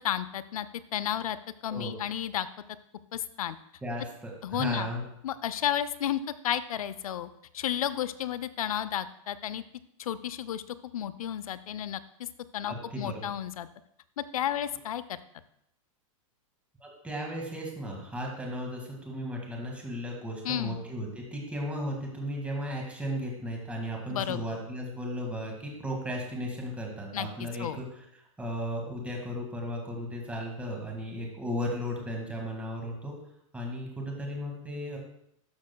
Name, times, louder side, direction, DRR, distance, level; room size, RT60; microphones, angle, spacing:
voice 1, 0.0-1.4 1.6-2.5 3.1-3.6 4.4-4.9 5.2-7.3 7.5-9.6 10.0-10.6 10.9-12.3 12.5-13.7 14.2-15.2 20.4-20.8 24.1-24.4 27.1-27.8, left 10 dB, 85° left, 15 dB, 0.5 m, -32 dB
voice 2, 3.8-5.0 12.7-13.3 16.8-27.9 28.4-33.1 33.5-35.0, equal, 5° right, 0 dB, 1.8 m, -35 dB
12.0 x 6.2 x 2.2 m, 0.75 s
supercardioid pair, 145°, 18 cm